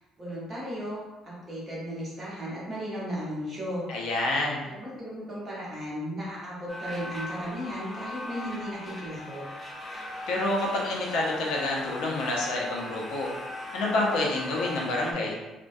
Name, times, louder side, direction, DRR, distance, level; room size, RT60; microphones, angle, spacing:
voice 1, 0.2-3.9 4.6-9.4, equal, 25° right, -7 dB, 0.8 m, -35 dB
voice 2, 3.9-4.6 10.3-13.3 13.7-15.4, left 2 dB, 85° left, -2 dB, 0.6 m, -28 dB
sound 1, 6.7-15.1, left 1 dB, 10° left, 0.3 m, -39 dB
2.3 x 2.2 x 2.5 m, 1.1 s
cardioid pair, 160°, 0 cm